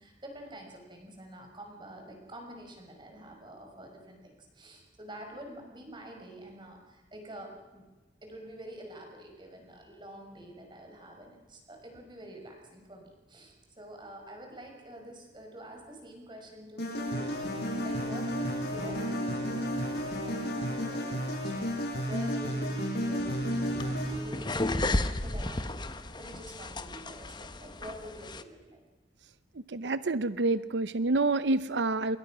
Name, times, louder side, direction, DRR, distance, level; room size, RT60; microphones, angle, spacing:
voice 1, 0.0-7.8 8.2-28.8, right 1 dB, 25° right, 3 dB, 5.8 m, -47 dB
sound 1, 16.8-24.4, equal, 70° left, 7.0 m, -32 dB
sound 2, 23.2-28.4, left 2 dB, 25° left, 1.1 m, -34 dB
voice 2, 29.7-32.2, right 3 dB, 90° right, 14 dB, 0.7 m, -28 dB
27.5 x 22.0 x 6.2 m, 1.2 s
head